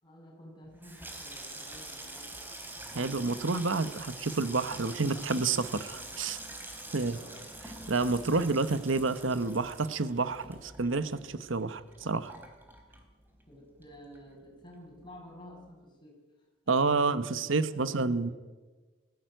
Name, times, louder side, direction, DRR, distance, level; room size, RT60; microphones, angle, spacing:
voice 1, 0.0-2.8 6.9-7.5 13.5-18.3, equal, 25° left, -1 dB, 6.9 m, -52 dB
Water tap faucet / Sink (filling or washing), 0.7-13.5 13.8-14.5 14.7-15.1, right 1 dB, 10° right, 3.6 m, -45 dB
voice 2, 2.9-6.4 6.9-7.2 7.9-12.3 16.7-18.3, right 3 dB, 80° right, 13 dB, 1.0 m, -29 dB
19.5 x 15.5 x 9.1 m, 1.3 s
head